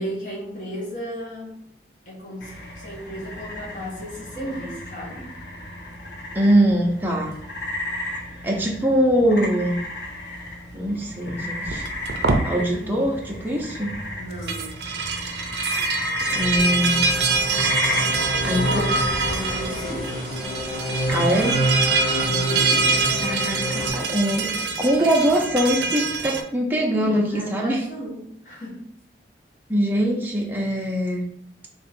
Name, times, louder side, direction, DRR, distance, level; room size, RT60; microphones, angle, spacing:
voice 1, 0.0-1.6 2.0-5.3 12.6-12.9 14.2-14.8 18.4-20.3 22.2-23.0 27.1-28.9, equal, 45° left, -5 dB, 1.2 m, -35 dB
sound 1, 2.4-20.0, left 1 dB, 75° left, 0.8 m, -33 dB
voice 2, 6.3-7.3 8.4-9.8 10.7-11.8 12.4-13.9 16.3-17.2 18.4-18.8 21.1-21.6 23.2-24.5 24.8-27.8 29.7-31.2, equal, 10° right, -1 dB, 0.5 m, -22 dB
sound 2, 11.7-12.5 14.3-26.4, right 4 dB, 75° right, 0.5 m, -25 dB
sound 3, 16.3-23.9, equal, 30° left, 1.2 m, -28 dB
3.6 x 2.4 x 4.2 m, 0.70 s
head